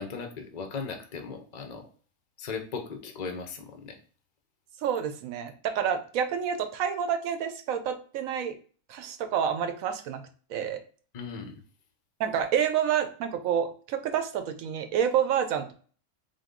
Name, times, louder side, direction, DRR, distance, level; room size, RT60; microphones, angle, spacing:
voice 1, 0.0-1.9 2.4-4.0 11.1-11.6, left 5 dB, 50° left, 5 dB, 0.5 m, -37 dB
voice 2, 4.8-8.6 8.9-10.2 10.5-10.8 12.2-15.7, right 8 dB, 75° right, 9 dB, 0.9 m, -28 dB
3.7 x 2.6 x 3.6 m, 0.42 s
omnidirectional pair, 1.6 m